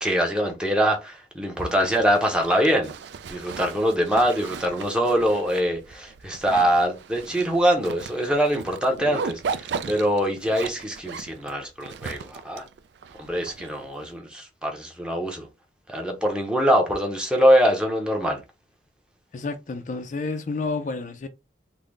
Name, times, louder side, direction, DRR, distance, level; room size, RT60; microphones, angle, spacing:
voice 1, 0.0-2.9 3.3-12.6 13.2-15.5 15.9-18.4, equal, 5° right, 0.7 m, -23 dB
Zipper (clothing), 1.6-14.1, right 5 dB, 70° right, 0.3 m, -37 dB
voice 2, 19.3-21.3, left 3 dB, 40° left, 0.4 m, -30 dB
3.8 x 2.1 x 3.1 m
head